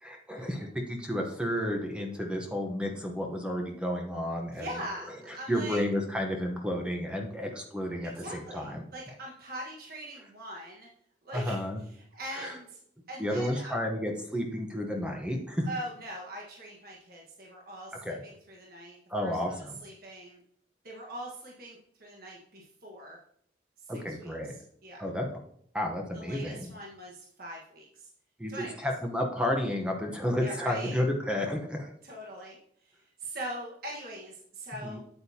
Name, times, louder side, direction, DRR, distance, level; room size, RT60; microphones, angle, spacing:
voice 1, 0.0-4.7 5.3-8.8 11.3-11.8 12.3-12.6 13.2-15.7 18.0-18.2 19.1-19.8 23.9-24.5 25.0-25.2 25.7-26.7 28.4-31.9 34.8-35.0, left 1 dB, 5° right, 2 dB, 0.9 m, -31 dB
voice 2, 4.5-5.8 8.1-10.9 11.2-11.6 12.1-12.8 13.1-13.7 15.7-19.0 19.2-20.4 20.8-23.2 24.2-24.3 24.8-25.0 26.1-28.1 28.5-28.9 30.4-31.0 32.0-35.0, right 1 dB, 50° right, -2 dB, 1.4 m, -42 dB
8.7 x 8.4 x 2.8 m, 0.66 s
head